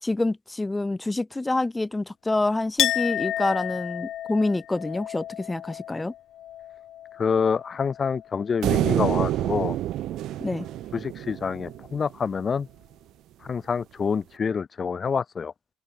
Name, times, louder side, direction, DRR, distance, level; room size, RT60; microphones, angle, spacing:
voice 1, 0.0-6.1 10.4-10.7, left 2 dB, 10° left, 2.2 m, -27 dB
Chink clink, 2.8-8.3 8.6-9.5, left 12 dB, 65° left, 1.9 m, -32 dB
voice 2, 7.2-9.8 10.9-12.7 13.4-15.5, left 6 dB, 35° left, 1.8 m, -27 dB
sound 1, 8.6-12.0, right 14 dB, 75° right, 2.1 m, -27 dB
open air
cardioid pair, 130°, 0 cm